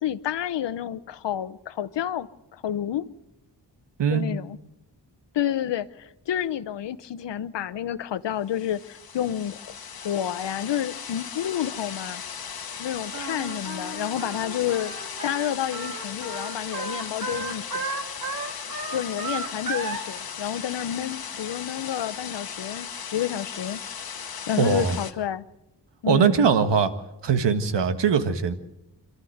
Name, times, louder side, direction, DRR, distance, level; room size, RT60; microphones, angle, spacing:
voice 1, 0.0-3.1 4.1-4.6 5.3-9.7 10.0-12.2 12.8-17.8 18.9-23.8 24.5-25.4 26.0-26.5, left 10 dB, 90° left, 0.9 m, -30 dB
sound 1, 8.5-25.1, left 7 dB, 60° left, 1.5 m, -37 dB
Singing, 13.1-20.0, right 3 dB, 50° right, 3.2 m, -34 dB
voice 2, 24.6-25.0 26.1-26.9 27.2-28.5, right 6 dB, 85° right, 1.6 m, -21 dB
27.0 x 13.0 x 7.9 m
wide cardioid pair, 115°, 41 cm